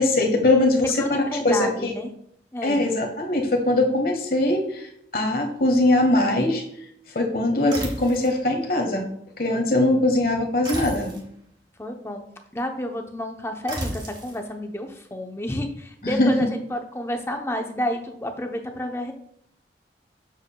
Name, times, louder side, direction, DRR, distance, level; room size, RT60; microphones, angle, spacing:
voice 1, 0.0-1.9 2.6-6.6 7.1-9.1 9.4-11.1 16.0-16.5, left 2 dB, 55° left, 3 dB, 1.2 m, -21 dB
voice 2, 1.0-2.1 2.5-2.9 9.5-10.0 11.8-12.2 12.5-19.1, left 1 dB, 15° left, 4 dB, 0.7 m, -30 dB
sound 1, 7.7-8.4 10.6-11.3 13.7-14.4, right 1 dB, 25° right, 1.7 m, -33 dB
7.4 x 7.1 x 2.3 m, 0.71 s
head